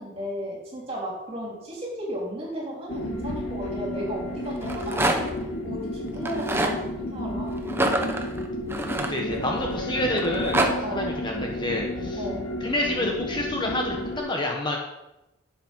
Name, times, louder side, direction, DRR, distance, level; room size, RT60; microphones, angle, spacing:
voice 1, 0.0-5.3 5.6-7.7 10.8-11.1 12.2-12.5, equal, 30° right, -3 dB, 3.6 m, -34 dB
sound 1, 2.9-14.2, left 1 dB, 70° left, 1.9 m, -32 dB
Rattle, 4.5-5.4 6.2-6.8 7.7-9.6 10.2-10.7, right 1 dB, 10° right, 0.9 m, -26 dB
voice 2, 8.9-10.6 10.9-12.2 12.6-14.8, left 1 dB, 20° left, 0 dB, 1.1 m, -28 dB
11.5 x 7.5 x 5.4 m, 0.93 s
head